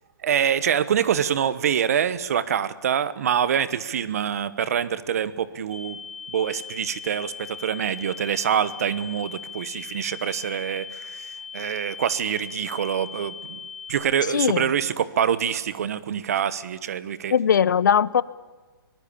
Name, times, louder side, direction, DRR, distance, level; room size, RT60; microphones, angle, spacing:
voice 1, 0.2-6.0 6.3-13.6 13.9-17.4, right 8 dB, 40° right, 17 dB, 1.1 m, -25 dB
sound 1, 5.7-13.9, left 6 dB, ahead, 5.5 m, -39 dB
voice 2, 14.3-14.6 17.3-18.2, left 8 dB, 55° left, 21 dB, 0.7 m, -19 dB
24.5 x 19.0 x 8.5 m, 1.3 s
hypercardioid pair, 175°, 12 cm